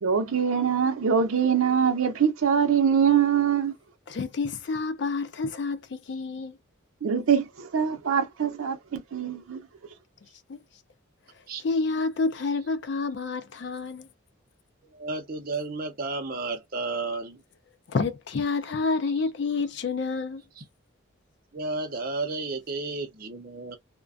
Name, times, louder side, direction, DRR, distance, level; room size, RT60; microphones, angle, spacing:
voice 1, 0.0-3.7 7.0-9.7, right 7 dB, 85° right, 0.5 m, -23 dB
voice 2, 4.1-6.6 10.5-10.6 11.6-14.1 17.9-20.4, left 4 dB, 55° left, 0.4 m, -28 dB
voice 3, 14.9-17.4 20.6-20.7 21.5-23.8, right 3 dB, 45° right, 0.6 m, -32 dB
2.4 x 2.1 x 2.4 m
head